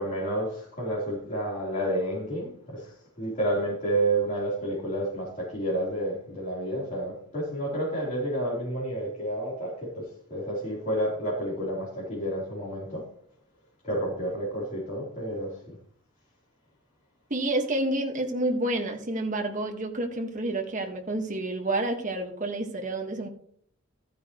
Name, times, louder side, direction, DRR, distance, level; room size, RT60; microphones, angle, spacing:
voice 1, 0.0-13.1 13.8-15.8, right 1 dB, 35° left, -7 dB, 3.7 m, -30 dB
voice 2, 17.3-23.3, right 1 dB, 35° right, 3 dB, 1.6 m, -29 dB
13.5 x 9.4 x 3.1 m, 0.62 s
head